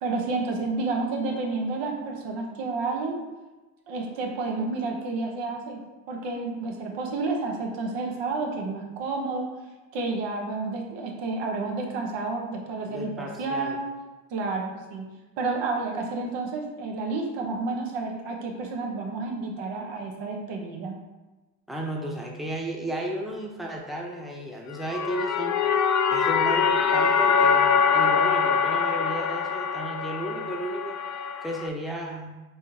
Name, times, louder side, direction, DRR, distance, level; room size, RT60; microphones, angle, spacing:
voice 1, 0.0-3.2 3.9-5.8 6.1-9.5 9.9-13.9 14.3-15.1 15.4-21.0, right 3 dB, 65° right, 0 dB, 1.0 m, -30 dB
voice 2, 12.8-13.8 21.7-25.8 26.1-31.0 31.4-32.4, right 1 dB, ahead, -1 dB, 0.9 m, -34 dB
sound 1, 24.7-31.7, left 6 dB, 40° left, 0.5 m, -23 dB
4.4 x 3.5 x 2.7 m, 1.1 s
hypercardioid pair, 45°, 46 cm